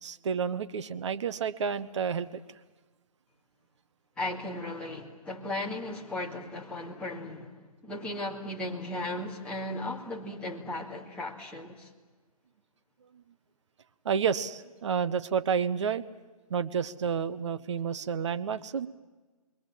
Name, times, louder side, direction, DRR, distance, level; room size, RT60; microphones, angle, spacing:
voice 1, 0.0-2.4 14.0-16.0 16.5-18.9, right 7 dB, 50° right, 1.0 m, -30 dB
voice 2, 4.2-11.9, left 1 dB, 5° left, 2.3 m, -36 dB
28.0 x 22.0 x 7.5 m
hypercardioid pair, 150°, 19 cm